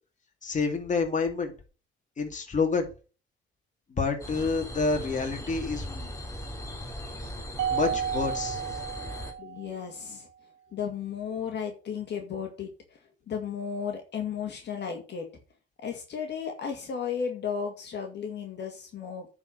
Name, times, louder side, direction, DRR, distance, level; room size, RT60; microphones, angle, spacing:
voice 1, 0.4-1.5 2.2-2.9 3.9-6.1 7.7-8.6, left 4 dB, 40° left, 2.6 m, -28 dB
sound 1, 4.2-9.3, equal, 15° left, 3.0 m, -38 dB
Mallet percussion, 7.6-10.0, right 8 dB, 70° right, 0.6 m, -32 dB
voice 2, 9.4-10.3 10.7-13.0 13.3-15.2 15.8-19.3, left 7 dB, 60° left, 2.2 m, -34 dB
9.7 x 4.8 x 6.4 m
cardioid pair, 90°, 20 cm